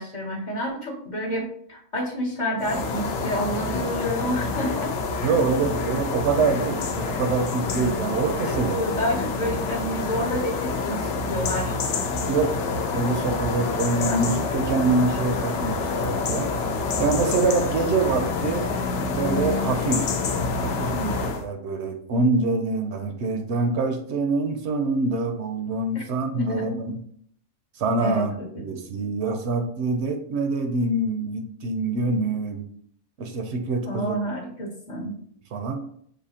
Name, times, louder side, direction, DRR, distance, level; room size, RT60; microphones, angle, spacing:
voice 1, 0.0-4.9 5.2-5.3 8.5-11.7 14.1-14.2 25.9-26.0 26.3-26.8 28.0-28.8 33.8-35.1, equal, 45° left, -1 dB, 0.8 m, -29 dB
sound 1, 2.6-21.5, left 4 dB, 70° left, 0.9 m, -27 dB
voice 2, 5.2-8.8 12.3-12.5 12.9-16.5 17.0-18.7 19.1-20.1 20.6-27.0 27.8-32.6 33.2-34.2 35.0-35.2 35.5-35.8, right 3 dB, 70° right, 6 dB, 0.8 m, -25 dB
6.2 x 2.7 x 2.8 m, 0.65 s
omnidirectional pair, 1.3 m